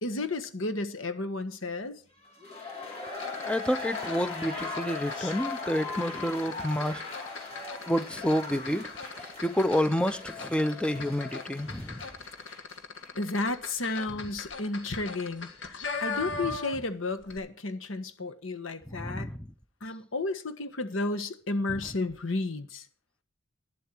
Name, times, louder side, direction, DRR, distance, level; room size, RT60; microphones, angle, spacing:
voice 1, 0.0-2.0 12.5-12.6 13.2-19.3 19.8-22.9, left 2 dB, 85° left, 1.4 m, -32 dB
sound 1, 2.2-13.1 13.4-13.5, left 3 dB, 30° left, 3.3 m, -39 dB
sound 2, 3.2-16.9 17.2-17.4, left 4 dB, 70° left, 1.8 m, -40 dB
voice 2, 3.4-7.0 7.9-8.9 9.4-12.0 16.5-16.6 18.9-19.5, equal, 5° left, 0.6 m, -29 dB
11.5 x 11.5 x 4.5 m
head